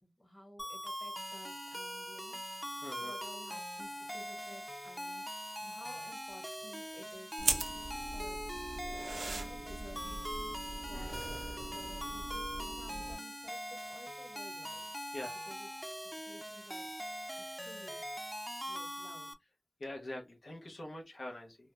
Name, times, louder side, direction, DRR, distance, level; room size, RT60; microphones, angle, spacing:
voice 1, 0.0-2.6 3.0-5.3 5.6-8.4 9.2-10.6 10.9-14.9 15.5-15.7 16.2-16.9 17.4-18.0 18.7-19.3, equal, 30° left, 1.1 m, -54 dB
sound 1, 0.6-19.3, equal, ahead, 0.4 m, -42 dB
voice 2, 2.8-3.2 10.9-11.1 15.1-15.3 19.8-21.6, left 1 dB, 80° left, 0.6 m, -44 dB
sound 2, 7.4-13.1, right 2 dB, 90° right, 0.4 m, -40 dB
2.3 x 2.1 x 2.9 m
wide cardioid pair, 65°, 0 cm